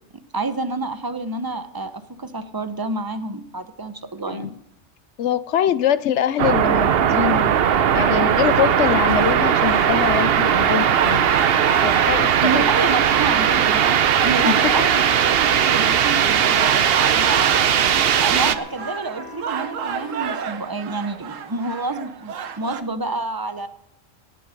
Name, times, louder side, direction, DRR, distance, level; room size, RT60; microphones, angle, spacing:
voice 1, 0.3-4.6 12.4-17.5 18.2-23.7, right 3 dB, 20° right, 10 dB, 0.8 m, -28 dB
voice 2, 5.2-7.6 7.9-11.3 11.8-12.6 14.4-14.7, left 9 dB, 65° left, 16 dB, 0.9 m, -23 dB
sound 1, 6.4-18.6, right 8 dB, 55° right, 0.8 m, -18 dB
sound 2, 7.0-20.4, left 3 dB, 20° left, 1.0 m, -40 dB
sound 3, 9.1-22.8, right 8 dB, 75° right, 1.3 m, -31 dB
18.0 x 8.3 x 6.4 m, 0.86 s
omnidirectional pair, 1.3 m